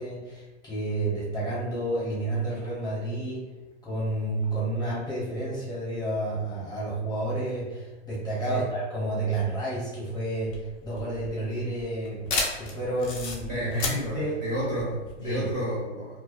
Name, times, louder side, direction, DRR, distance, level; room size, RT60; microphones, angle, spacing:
voice 1, 0.0-3.4 3.8-12.3 12.6-14.3 15.2-15.4, right 2 dB, 10° left, -7 dB, 0.8 m, -30 dB
sound 1, 10.4-15.5, left 3 dB, 30° left, 0.4 m, -33 dB
voice 2, 13.5-16.2, equal, 20° right, -6 dB, 0.6 m, -30 dB
2.3 x 2.2 x 2.3 m, 1.1 s
hypercardioid pair, 125°, 35 cm